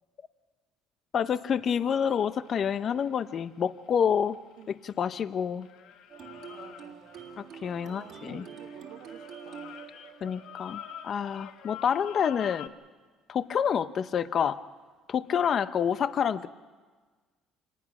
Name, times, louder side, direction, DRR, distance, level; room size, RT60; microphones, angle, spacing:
voice 1, 1.1-4.4 4.7-5.7 7.4-8.4 10.2-12.7 13.3-14.6 15.1-16.5, left 8 dB, 40° left, 14 dB, 0.6 m, -28 dB
sound 1, 2.2-5.3 5.6-12.7, left 10 dB, 65° left, 1.0 m, -47 dB
sound 2, 6.1-11.6, right 7 dB, 50° right, 1.7 m, -47 dB
voice 2, 6.5-7.5 7.8-9.7, right 11 dB, 90° right, 6 dB, 1.5 m, -52 dB
26.5 x 19.5 x 6.0 m, 1.4 s
cardioid pair, 150°, 0 cm